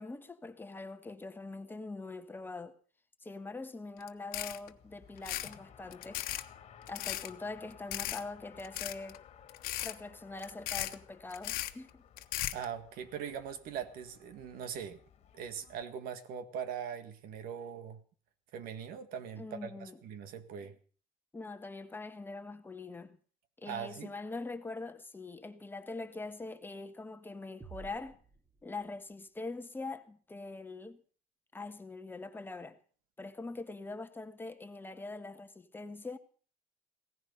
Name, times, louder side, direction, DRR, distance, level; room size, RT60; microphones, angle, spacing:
voice 1, 0.0-2.8 3.2-6.2 6.9-9.2 9.8-12.0 19.4-20.0 21.3-23.2 23.6-28.2 28.6-31.0 31.5-32.8 33.2-36.2, left 3 dB, 15° left, 1.3 m, -43 dB
sound 1, 4.0-4.1 4.3-4.7 5.2-5.5 5.9-6.4 6.9-7.3 7.9-8.2 8.6-9.2 9.5-9.9 10.4-11.0 11.3-11.7 12.2-12.7, left 15 dB, 75° left, 1.3 m, -36 dB
Race car auto racing, 4.5-15.8, left 8 dB, 45° left, 1.9 m, -57 dB
voice 2, 12.5-15.0 15.3-18.0 18.5-20.8 23.7-24.1, right 8 dB, 75° right, 1.9 m, -41 dB
sound 2, 27.6-29.3, right 4 dB, 20° right, 2.4 m, -53 dB
17.0 x 15.0 x 5.4 m
cardioid pair, 135°, 15 cm